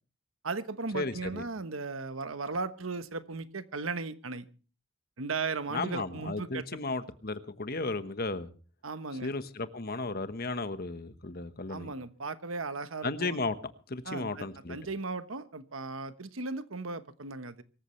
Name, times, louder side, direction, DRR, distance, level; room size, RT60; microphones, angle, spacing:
voice 1, 0.4-4.5 5.2-6.8 8.8-9.3 11.7-13.4 14.0-17.6, right 4 dB, 85° right, 12 dB, 1.2 m, -36 dB
voice 2, 0.9-1.4 5.7-8.5 9.2-11.9 13.0-13.6 13.9-14.8, left 3 dB, 50° left, 10 dB, 1.2 m, -34 dB
24.0 x 14.0 x 3.2 m, 0.37 s
head